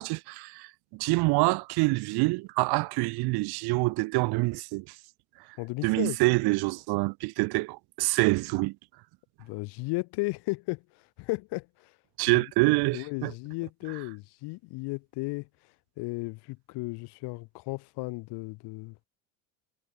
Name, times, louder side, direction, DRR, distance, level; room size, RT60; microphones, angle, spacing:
voice 1, 0.0-4.9 5.8-8.7 12.2-13.3, right 24 dB, 65° right, 1.1 m, -26 dB
voice 2, 5.6-6.2 9.4-10.8 11.2-11.9 12.3-12.4 12.9-15.5 16.0-19.0, left 25 dB, 65° left, 2.7 m, -34 dB
cardioid pair, 125°, 42 cm